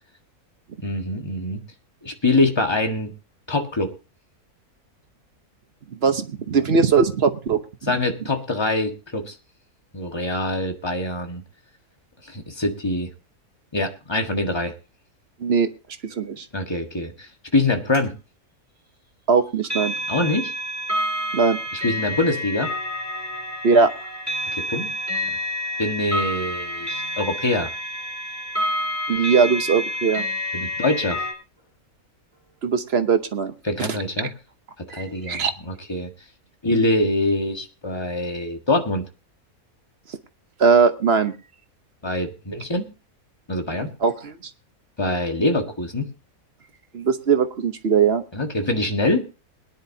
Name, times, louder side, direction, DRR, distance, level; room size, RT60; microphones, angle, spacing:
voice 1, 0.8-1.6 2.0-3.1 3.5-3.9 7.9-9.3 9.9-11.4 12.2-13.1 13.7-14.7 16.5-18.1 20.1-20.5 21.7-22.7 24.5-24.9 25.8-27.7 30.5-31.2 33.6-34.3 34.9-36.1 36.6-39.0 42.0-42.9 43.5-43.9 45.0-46.1 48.3-49.2, left 2 dB, 15° left, 4 dB, 1.6 m, -24 dB
voice 2, 6.0-7.9 15.4-15.7 16.0-16.5 19.3-19.9 21.3-21.6 23.6-23.9 29.1-30.2 32.6-33.5 33.8-33.9 34.9-35.5 40.6-41.3 44.0-44.4 46.9-48.2, right 5 dB, 50° right, 9 dB, 1.0 m, -20 dB
sound 1, 17.9-18.0 19.6-31.3, left 1 dB, 10° right, 3.0 m, -28 dB
21.5 x 10.5 x 2.7 m, 0.31 s
omnidirectional pair, 1.6 m